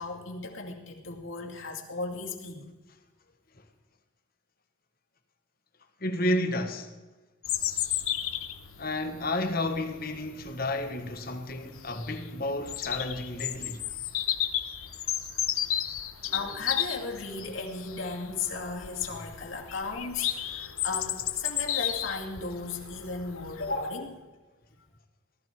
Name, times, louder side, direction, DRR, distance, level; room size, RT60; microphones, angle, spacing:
voice 1, 0.0-2.7 16.2-24.2, left 4 dB, 65° left, 2.4 m, -35 dB
voice 2, 6.0-6.9 8.8-13.8, left 1 dB, 45° left, 1.4 m, -31 dB
Bird vocalization bird call bird song, 7.4-23.9, left 11 dB, 90° left, 1.1 m, -34 dB
19.0 x 14.0 x 4.7 m
head